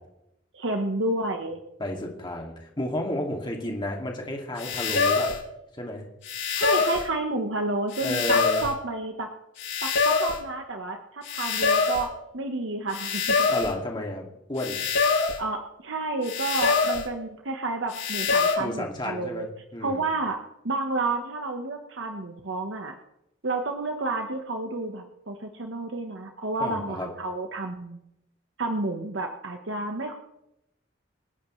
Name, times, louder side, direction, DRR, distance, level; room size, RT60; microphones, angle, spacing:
voice 1, 0.5-1.6 6.5-9.3 9.8-13.5 15.4-19.4 19.8-20.4 20.6-22.9 23.4-28.0 28.6-30.2, right 2 dB, 80° right, 4 dB, 1.2 m, -30 dB
voice 2, 1.8-5.3 5.7-6.0 8.0-8.6 13.5-14.8 18.6-19.5 19.7-20.1 26.6-27.1, left 1 dB, 25° left, 1 dB, 2.4 m, -32 dB
sound 1, 4.6-5.4 6.2-7.1 7.9-8.7 9.6-10.4 11.2-12.1 12.9-13.7 14.6-15.4 16.2-17.1 17.9-18.5, left 4 dB, 80° left, 6.8 m, -24 dB
27.5 x 10.5 x 3.2 m, 0.84 s
head